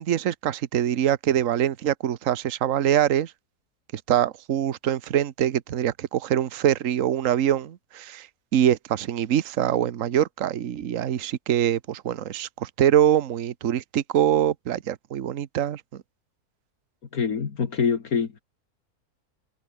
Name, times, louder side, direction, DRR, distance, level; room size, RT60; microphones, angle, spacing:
voice 1, 0.0-3.3 3.9-8.3 8.5-15.8, right 10 dB, 60° right, 1.3 m, -24 dB
voice 2, 17.1-18.4, left 6 dB, 70° left, 2.2 m, -25 dB
omnidirectional pair, 1.6 m